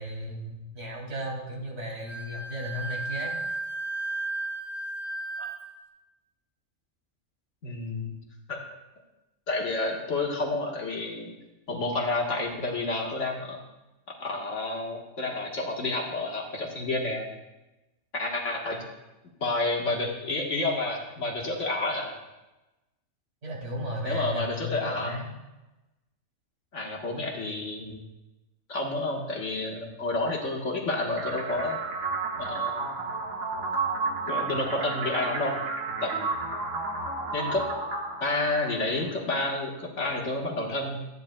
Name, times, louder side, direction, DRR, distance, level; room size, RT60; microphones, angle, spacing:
voice 1, 0.0-3.3 23.4-25.3, equal, 50° right, -2 dB, 2.6 m, -35 dB
Wind instrument woodwind instrument, 2.0-5.8, right 2 dB, 25° left, 1.4 m, -34 dB
voice 2, 7.6-8.2 8.5-8.6 9.5-11.3 11.7-13.6 14.2-17.3 18.1-18.9 19.4-22.2 24.0-25.1 26.7-28.0 28.7-31.8 32.4-33.1 34.3-35.6 36.0-36.4 37.3-37.6 38.2-41.0, left 2 dB, 65° left, -1 dB, 1.6 m, -30 dB
sound 1, 31.2-39.1, right 4 dB, 85° right, 1.7 m, -32 dB
13.5 x 9.6 x 2.2 m, 1.0 s
omnidirectional pair, 1.4 m